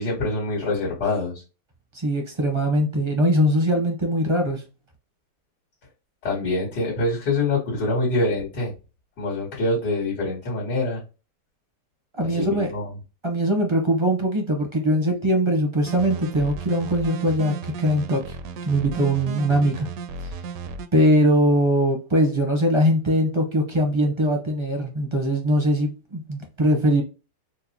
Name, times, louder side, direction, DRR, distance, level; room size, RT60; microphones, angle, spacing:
voice 1, 0.0-1.4 6.2-8.7 9.2-11.0 12.2-12.9, left 2 dB, 90° left, 2.3 m, -25 dB
voice 2, 1.9-4.6 12.2-12.7 13.2-18.4 18.6-19.9 20.9-27.0, equal, 30° right, 0.5 m, -21 dB
sound 1, 15.8-20.9, right 5 dB, 70° right, 0.9 m, -34 dB
4.6 x 2.1 x 2.8 m
omnidirectional pair, 1.8 m